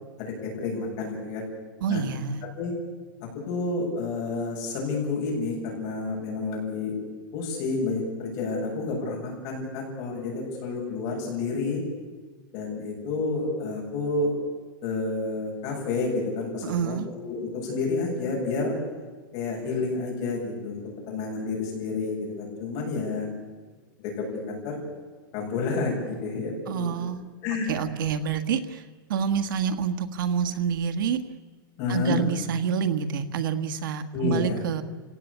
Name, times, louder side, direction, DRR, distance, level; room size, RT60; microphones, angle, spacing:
voice 1, 0.2-1.4 1.9-2.0 2.4-2.7 3.2-7.0 7.3-11.8 12.5-14.3 14.8-18.8 19.3-20.8 21.1-23.3 24.0-24.8 25.3-27.0 27.4-27.7 31.8-32.2 34.1-34.6, left 3 dB, 35° left, -2 dB, 7.6 m, -30 dB
voice 2, 1.8-2.5 16.6-17.1 26.7-27.2 27.7-28.8 29.1-31.2 31.9-34.8, right 7 dB, 75° right, 8 dB, 1.7 m, -27 dB
29.0 x 17.5 x 8.6 m, 1.4 s
supercardioid pair, 175°, 11 cm